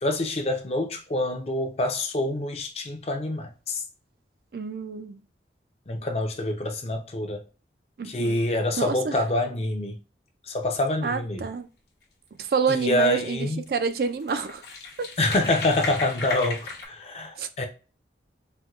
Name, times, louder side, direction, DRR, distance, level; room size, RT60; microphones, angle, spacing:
voice 1, 0.0-3.8 5.9-7.4 8.0-10.0 10.5-11.5 12.7-13.7 15.2-17.7, left 1 dB, 35° left, 0.5 m, -26 dB
voice 2, 4.5-5.2 8.0-8.4 8.8-9.2 11.0-11.7 12.4-14.6 17.4-17.5, right 5 dB, 55° right, 0.4 m, -28 dB
sound 1, 12.9-13.1 13.7-13.8 14.0-16.9, left 4 dB, 70° left, 0.8 m, -35 dB
4.3 x 2.2 x 2.4 m
head